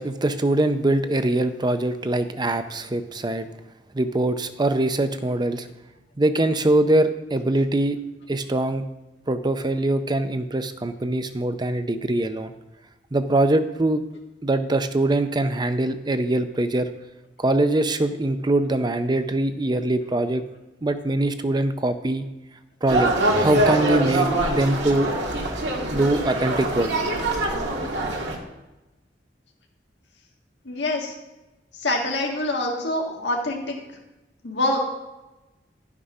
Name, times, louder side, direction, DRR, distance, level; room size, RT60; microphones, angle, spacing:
voice 1, 0.0-3.5 3.9-5.7 6.2-8.0 8.3-8.9 9.3-12.5 13.1-14.0 14.4-16.9 17.4-20.4 20.8-22.3 22.8-23.1 23.4-25.1 25.9-26.9, right 2 dB, 25° right, 9 dB, 0.6 m, -23 dB
sound 1, 22.9-28.4, right 1 dB, 75° right, 1.9 m, -24 dB
voice 2, 30.6-31.1 31.8-33.7 34.4-34.8, left 2 dB, 80° left, 0 dB, 1.6 m, -25 dB
11.5 x 6.0 x 5.5 m, 1.0 s
head